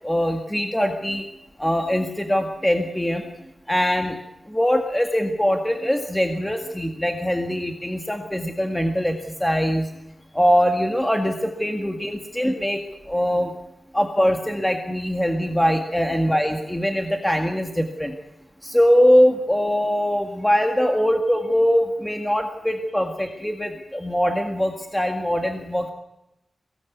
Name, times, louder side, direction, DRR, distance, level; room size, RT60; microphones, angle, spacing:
voice 1, 0.0-1.2 1.6-3.2 3.7-4.2 4.5-9.9 10.3-12.8 13.1-13.5 13.9-18.1 18.6-25.9, equal, 5° left, 4 dB, 1.9 m, -22 dB
23.0 x 18.5 x 9.6 m, 0.91 s
wide cardioid pair, 125°, 0 cm